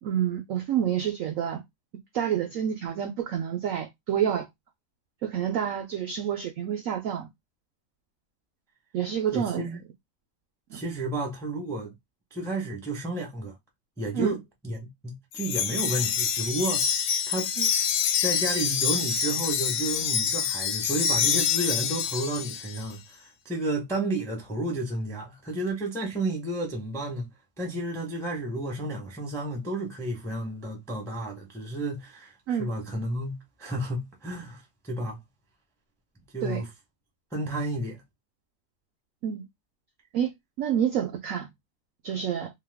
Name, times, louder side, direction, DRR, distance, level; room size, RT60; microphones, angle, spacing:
voice 1, 0.0-1.6 2.1-4.5 5.2-7.3 8.9-9.6 10.7-10.8 14.1-14.4 17.6-17.7 32.5-32.7 36.4-36.6 39.2-39.5 40.1-40.3 40.6-41.5 42.0-42.5, right 9 dB, 75° right, 0.7 m, -28 dB
voice 2, 9.3-9.8 10.7-11.9 12.3-13.6 14.0-16.9 17.3-17.5 18.2-27.3 27.6-35.2 36.3-36.7 37.3-38.0, right 1 dB, 5° left, 0.4 m, -32 dB
Wind chime, 15.3-22.8, left 7 dB, 75° left, 1.1 m, -26 dB
2.8 x 2.2 x 3.4 m
omnidirectional pair, 1.9 m